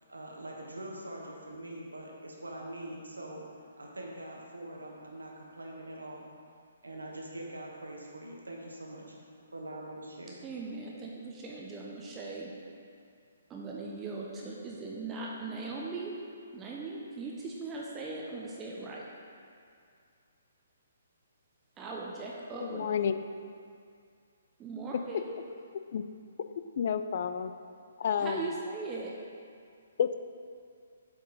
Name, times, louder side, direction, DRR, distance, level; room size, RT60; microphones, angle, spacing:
voice 1, 0.1-3.4 3.8-6.3 6.8-9.1 9.5-10.4, right 1 dB, 75° right, -1 dB, 1.2 m, -43 dB
voice 2, 10.4-12.6 13.5-16.1 16.5-19.1 21.8-22.9 24.6-25.4 28.2-29.2, right 3 dB, 15° right, -3 dB, 0.6 m, -39 dB
voice 3, 22.6-23.1 25.9-26.0 26.8-27.5 28.0-28.5 30.0-30.2, left 7 dB, 45° left, 10 dB, 0.3 m, -30 dB
7.4 x 4.6 x 3.9 m, 2.3 s
figure-of-eight pair, 130°, 0 cm